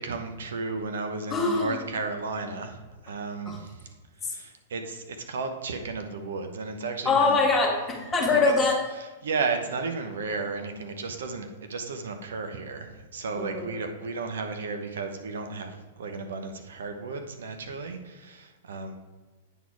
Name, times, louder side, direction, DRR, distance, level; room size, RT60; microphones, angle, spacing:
voice 1, 0.0-7.4 8.3-8.5 8.9-19.0, right 4 dB, 80° right, 6 dB, 0.9 m, -34 dB
voice 2, 1.3-1.8 3.5-3.6 7.1-8.8 13.4-13.8, left 3 dB, 20° left, -1 dB, 1.7 m, -23 dB
9.2 x 4.3 x 4.6 m, 1.3 s
hypercardioid pair, 120°, 0 cm